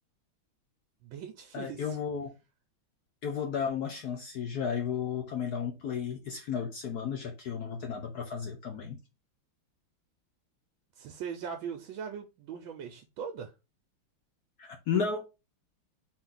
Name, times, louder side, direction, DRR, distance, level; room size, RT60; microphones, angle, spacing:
voice 1, 1.0-2.0 11.0-13.5, right 7 dB, 75° right, 1.3 m, -40 dB
voice 2, 1.5-2.3 3.2-9.0 14.6-15.2, left 7 dB, 65° left, 1.0 m, -33 dB
4.3 x 2.6 x 3.7 m
omnidirectional pair, 2.3 m